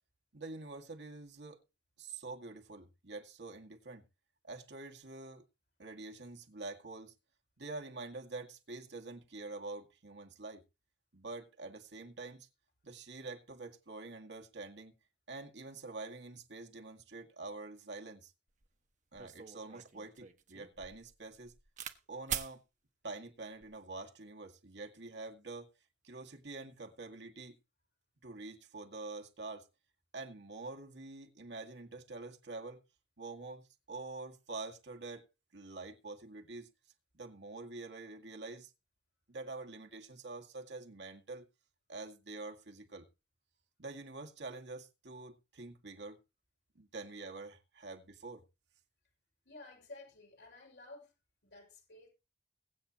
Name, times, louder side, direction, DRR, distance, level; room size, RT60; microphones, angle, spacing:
voice 1, 0.3-1.6 2.0-4.0 4.4-5.5 5.8-7.1 7.6-10.6 11.1-12.5 12.8-14.9 15.3-18.3 19.1-21.5 22.1-22.6 23.0-25.7 26.0-27.6 28.2-29.7 30.1-32.8 33.2-35.3 35.5-36.7 37.1-38.7 39.3-41.5 41.9-43.1 43.8-46.2 46.8-48.4, right 3 dB, 85° right, 2.1 m, -46 dB
sound 1, 18.6-18.7 19.2-22.0 22.3-22.5 23.4-23.8, right 8 dB, 45° right, 1.2 m, -43 dB
voice 2, 49.4-51.1 51.4-52.1, left 2 dB, 75° left, 5.7 m, -53 dB
22.0 x 8.7 x 3.0 m
head